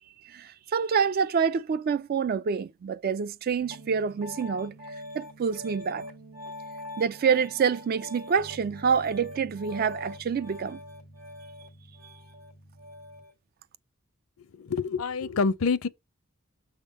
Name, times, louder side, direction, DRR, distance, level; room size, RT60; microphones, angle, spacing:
voice 1, 0.2-4.7 5.1-6.1 7.0-10.8, right 6 dB, 45° right, 0.3 m, -27 dB
Piano, 3.6-13.3, left 1 dB, 90° right, 2.0 m, -43 dB
voice 2, 14.4-15.9, left 4 dB, 75° left, 0.5 m, -27 dB
6.6 x 3.6 x 5.1 m
head